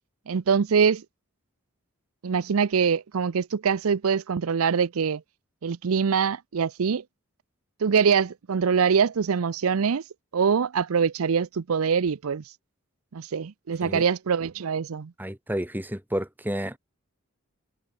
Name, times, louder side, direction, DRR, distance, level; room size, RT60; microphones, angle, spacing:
voice 1, 0.3-1.0 2.2-5.2 5.6-7.0 7.8-10.0 10.3-12.4 13.1-15.1, right 6 dB, 75° right, 0.5 m, -24 dB
voice 2, 15.2-16.8, equal, 10° right, 5.1 m, -30 dB
head